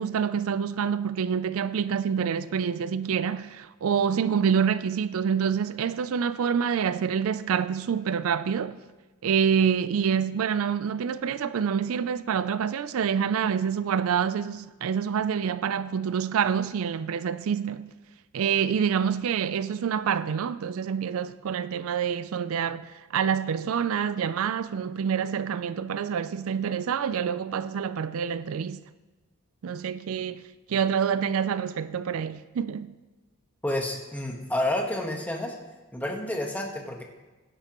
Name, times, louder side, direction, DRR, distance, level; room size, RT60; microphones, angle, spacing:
voice 1, 0.0-8.8 9.2-17.9 18.3-28.8 29.6-30.4 30.7-33.0, right 7 dB, 70° right, 0.4 m, -27 dB
voice 2, 33.6-35.5 35.9-37.0, left 1 dB, 5° left, 1.2 m, -29 dB
16.0 x 11.0 x 3.0 m
head